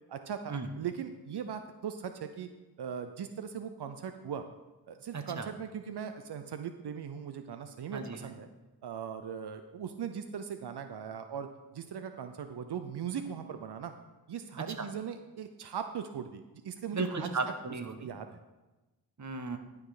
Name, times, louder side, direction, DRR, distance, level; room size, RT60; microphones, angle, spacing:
voice 1, 0.1-2.5 2.8-4.4 4.9-8.5 8.8-11.5 11.7-13.9 14.3-17.3 18.0-18.4, right 7 dB, 85° right, 8 dB, 0.6 m, -39 dB
voice 2, 5.1-5.5 7.9-8.3 14.8-14.9 16.9-18.1 19.2-19.6, right 3 dB, 45° right, 8 dB, 1.1 m, -35 dB
11.5 x 6.0 x 4.9 m, 1.1 s
cardioid pair, 60°, 39 cm